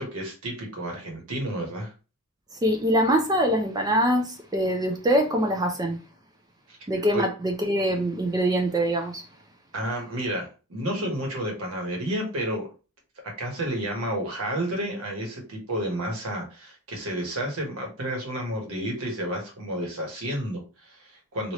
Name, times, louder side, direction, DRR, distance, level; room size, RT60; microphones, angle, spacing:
voice 1, 0.0-1.9 6.7-6.8 7.1-7.2 9.7-12.7 13.4-21.5, right 1 dB, 70° right, 1.2 m, -31 dB
voice 2, 2.5-6.0 6.9-9.3, equal, 20° right, 0.5 m, -24 dB
3.2 x 2.5 x 2.9 m
head